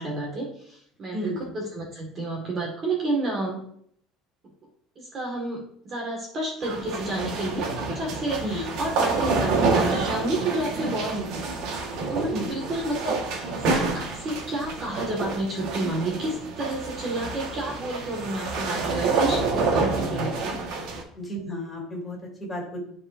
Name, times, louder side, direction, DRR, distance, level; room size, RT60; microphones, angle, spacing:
voice 1, 0.0-3.6 5.0-11.4 11.8-13.2 13.5-20.6, right 2 dB, 30° right, -2 dB, 1.8 m, -30 dB
sound 1, 6.6-21.0, right 3 dB, 60° right, 1.5 m, -28 dB
voice 2, 21.1-22.8, equal, 10° left, -3 dB, 3.0 m, -32 dB
13.0 x 4.9 x 2.7 m, 0.67 s
cardioid pair, 155°, 0 cm